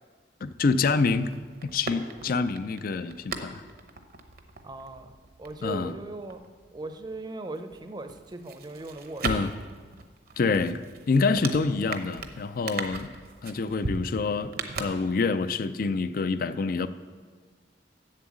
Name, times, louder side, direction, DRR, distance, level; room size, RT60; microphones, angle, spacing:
voice 1, 0.4-1.3 1.7-3.6 5.6-5.9 9.2-9.5 10.4-13.1 13.4-16.9, left 4 dB, 50° left, 13 dB, 0.4 m, -27 dB
sound 1, 0.7-7.2 7.5-15.5 15.8-15.9, right 4 dB, 55° right, 0.8 m, -39 dB
voice 2, 4.6-5.1 5.4-6.4 6.7-9.4, right 2 dB, 25° right, 7 dB, 0.6 m, -39 dB
7.8 x 7.5 x 7.3 m, 1.5 s
head